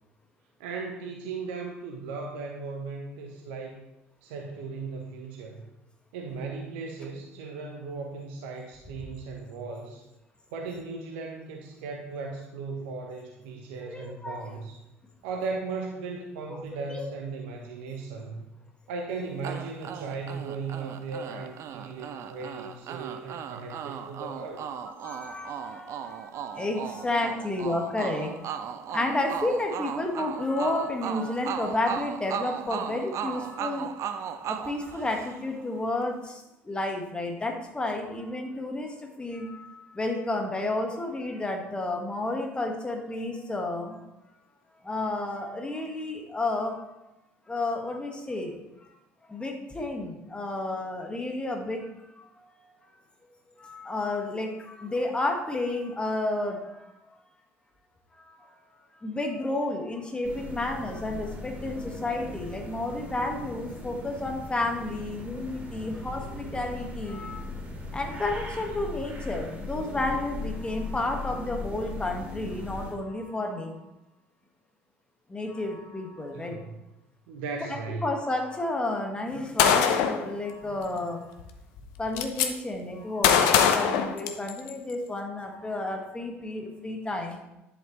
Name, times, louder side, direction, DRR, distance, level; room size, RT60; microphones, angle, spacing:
voice 1, 0.6-3.8 4.2-5.7 6.1-10.0 10.5-14.8 15.2-18.4 18.9-24.7 76.3-76.8 77.3-78.1, right 4 dB, 65° right, 1 dB, 1.1 m, -37 dB
voice 2, 13.9-14.5 16.5-16.6 16.9-17.1 25.0-28.5 28.9-33.9 34.4-44.1 44.8-46.8 47.5-49.0 49.3-52.7 53.6-57.1 58.2-58.6 59.0-67.4 67.9-73.8 75.3-76.6 77.7-81.3 82.0-87.4, left 2 dB, 15° left, 2 dB, 1.8 m, -31 dB
sound 1, 19.4-35.6, right 8 dB, 45° right, 0.7 m, -37 dB
sound 2, 60.2-72.9, left 2 dB, 20° right, 3.4 m, -39 dB
Gunshot gunfire, 79.6-80.2 81.4-81.5 81.8-82.5 83.2-84.7, left 8 dB, 60° left, 0.9 m, -21 dB
10.5 x 7.9 x 3.3 m, 0.91 s
figure-of-eight pair, 60°, 7 cm